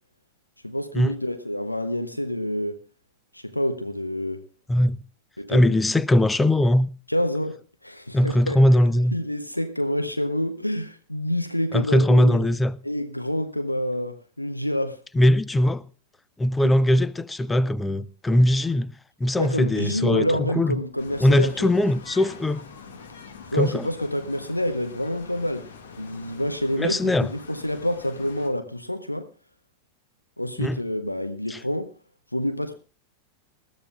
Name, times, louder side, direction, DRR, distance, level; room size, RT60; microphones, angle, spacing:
voice 1, 0.6-2.8 3.3-4.4 5.4-5.8 7.1-8.6 9.1-12.5 12.8-15.0 16.6-16.7 19.4-21.7 23.5-25.7 26.0-29.3 30.4-31.9 32.3-32.7, left 1 dB, 85° left, 0.7 m, -28 dB
voice 2, 4.7-5.0 5.5-6.9 8.1-9.1 11.7-12.8 15.2-15.8 16.4-18.9 19.2-20.8 21.2-22.7 23.5-23.9 26.8-27.3 30.6-30.8 31.5-31.6, left 1 dB, 10° left, 0.5 m, -20 dB
sound 1, 21.0-28.5, left 5 dB, 60° left, 1.8 m, -44 dB
20.5 x 14.0 x 2.3 m
figure-of-eight pair, 90°, 0 cm